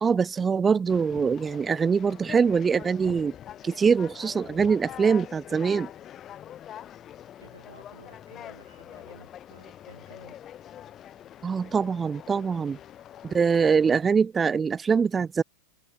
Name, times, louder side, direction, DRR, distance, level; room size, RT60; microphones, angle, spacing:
voice 1, 0.0-3.3 3.6-5.9 11.4-12.8 13.2-15.4, right 6 dB, 15° right, 0.6 m, -23 dB
Conversation, 0.9-13.9, left 11 dB, 30° left, 3.2 m, -44 dB
voice 2, 7.4-10.4, right 3 dB, 80° right, 7.4 m, -53 dB
figure-of-eight pair, 90°, 0 cm